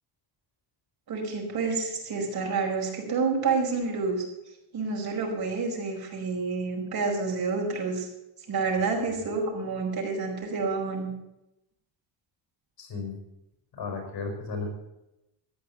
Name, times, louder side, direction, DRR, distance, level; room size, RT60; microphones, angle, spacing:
voice 1, 1.1-4.3 4.7-8.1 8.5-11.1, right 4 dB, 50° right, -1 dB, 5.0 m, -29 dB
voice 2, 12.8-13.2 13.7-14.7, left 4 dB, 55° left, 3 dB, 5.5 m, -34 dB
14.0 x 9.2 x 8.0 m, 0.89 s
cardioid pair, 130°, 45 cm